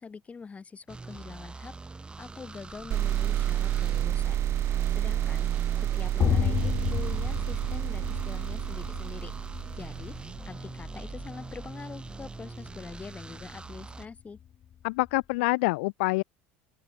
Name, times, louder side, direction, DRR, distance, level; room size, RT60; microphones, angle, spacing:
voice 1, 0.0-1.7 2.2-5.5 5.8-9.3 9.7-10.1 10.5-14.4, left 5 dB, 20° left, 5.8 m, -44 dB
sound 1, 0.9-14.1, right 3 dB, 15° right, 2.3 m, -43 dB
sound 2, 2.9-10.4, right 12 dB, 45° right, 2.8 m, -29 dB
sound 3, 6.2-15.2, left 10 dB, 40° left, 2.9 m, -33 dB
voice 2, 14.8-16.2, left 26 dB, 80° left, 1.1 m, -26 dB
open air
supercardioid pair, 105°, 6 cm